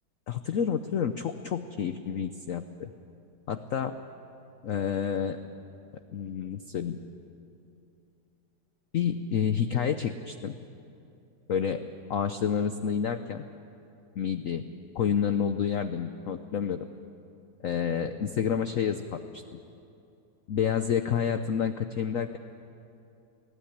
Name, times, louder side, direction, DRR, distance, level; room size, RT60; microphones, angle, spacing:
voice 1, 0.3-2.9 3.5-4.0 4.6-5.4 6.1-7.0 8.9-10.5 11.5-11.8 12.1-13.4 14.2-14.7 14.9-16.8 17.6-19.6 20.5-22.4, left 7 dB, 65° left, 9 dB, 0.8 m, -29 dB
22.0 x 16.0 x 10.0 m, 2.7 s
omnidirectional pair, 2.1 m